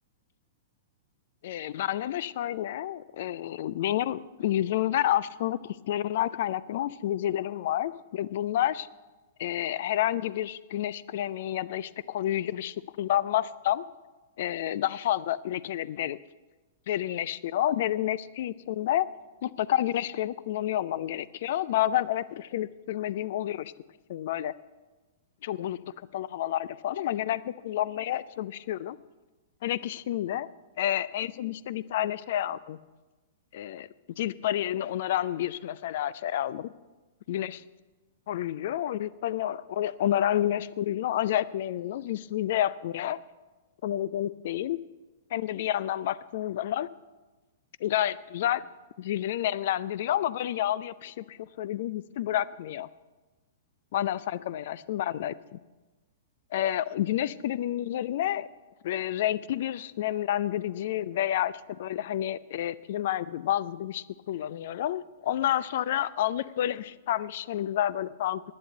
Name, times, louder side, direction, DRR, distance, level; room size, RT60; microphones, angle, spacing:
voice 1, 1.4-8.9 9.4-13.8 14.4-16.2 16.9-19.1 19.4-23.7 24.1-24.5 25.4-25.8 26.1-29.0 29.6-30.5 30.8-32.8 33.5-33.9 34.2-36.7 37.3-37.6 38.3-43.2 43.8-44.8 45.3-46.9 47.8-48.6 49.0-52.9 53.9-55.6 56.5-58.5 58.8-68.5, left 12 dB, 50° left, 19 dB, 0.4 m, -29 dB
11.0 x 9.6 x 8.8 m, 1.2 s
figure-of-eight pair, 105°, 0 cm